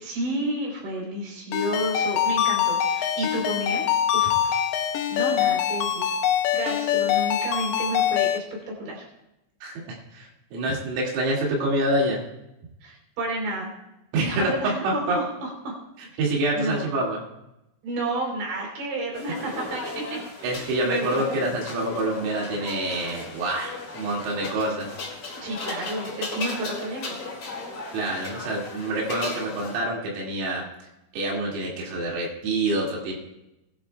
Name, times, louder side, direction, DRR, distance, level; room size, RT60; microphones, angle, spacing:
voice 1, 0.0-3.9 4.1-4.6 5.1-6.1 6.5-9.1 12.8-13.7 14.2-15.8 16.5-16.9 17.8-21.5 25.4-27.2, right 1 dB, 60° right, -1 dB, 5.8 m, -31 dB
Ringtone, 1.5-8.4, left 9 dB, 80° left, 3.4 m, -24 dB
voice 2, 10.1-12.2 14.1-14.5 15.1-15.2 16.2-17.2 20.4-24.9 27.9-30.6 31.1-33.2, right 1 dB, 80° right, -3 dB, 5.0 m, -26 dB
sound 1, 19.1-29.8, left 3 dB, 40° left, 2.1 m, -36 dB
21.0 x 11.5 x 2.3 m, 0.90 s
omnidirectional pair, 6.0 m